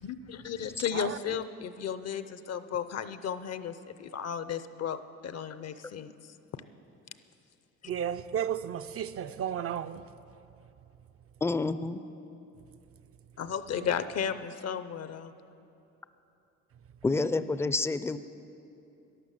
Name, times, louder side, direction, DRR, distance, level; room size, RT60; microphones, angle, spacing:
voice 1, 0.0-6.1 13.4-15.3, left 8 dB, 55° left, 0.7 m, -34 dB
voice 2, 0.9-1.4 7.9-10.1 13.7-14.0, right 9 dB, 50° right, 0.5 m, -34 dB
voice 3, 11.4-12.0 17.0-18.2, left 3 dB, 10° left, 0.4 m, -28 dB
12.0 x 11.0 x 7.5 m
cardioid pair, 90°, 30 cm